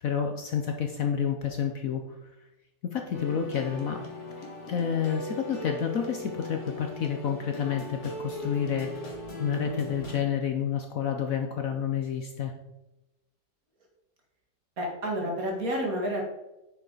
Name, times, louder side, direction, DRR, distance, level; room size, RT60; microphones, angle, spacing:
voice 1, 0.0-2.0 2.8-4.0 4.4-8.9 9.4-12.5, left 8 dB, 60° left, 4 dB, 1.0 m, -29 dB
sound 1, 3.1-10.2, left 1 dB, 40° left, 2.0 m, -38 dB
voice 2, 14.8-16.2, equal, 50° right, 0 dB, 2.3 m, -29 dB
9.0 x 7.1 x 4.0 m, 0.97 s
omnidirectional pair, 1.9 m